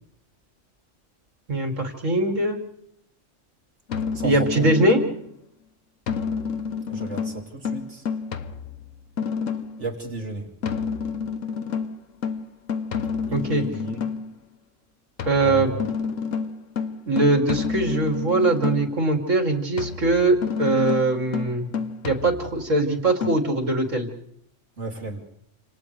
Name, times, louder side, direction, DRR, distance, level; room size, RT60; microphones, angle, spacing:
voice 1, 1.5-2.6 4.2-5.0 13.3-13.6 15.3-15.7 17.1-21.7 22.0-24.1, right 2 dB, 85° right, 3 dB, 3.3 m, -21 dB
sound 1, 3.9-5.3 6.1-9.9 10.6-14.3 15.2-19.0 19.8-22.7 23.2-23.4, left 6 dB, 85° left, 1.4 m, -29 dB
voice 2, 4.1-4.7 6.9-8.0 9.8-10.5 13.2-14.1 15.4-15.8 24.8-25.2, right 2 dB, 65° right, 0 dB, 3.2 m, -33 dB
29.5 x 27.5 x 3.4 m, 0.72 s
omnidirectional pair, 1.3 m